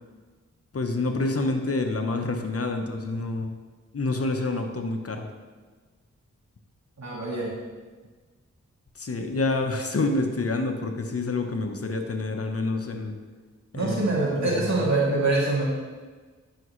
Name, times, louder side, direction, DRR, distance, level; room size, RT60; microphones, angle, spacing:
voice 1, 0.7-3.6 3.9-5.2 9.0-13.2 13.7-14.0 14.4-14.8, left 2 dB, 50° left, 4 dB, 1.0 m, -27 dB
voice 2, 7.0-7.5 13.7-15.6, right 2 dB, 65° right, -5 dB, 2.6 m, -24 dB
10.5 x 6.0 x 3.2 m, 1.4 s
cardioid pair, 45°, 30 cm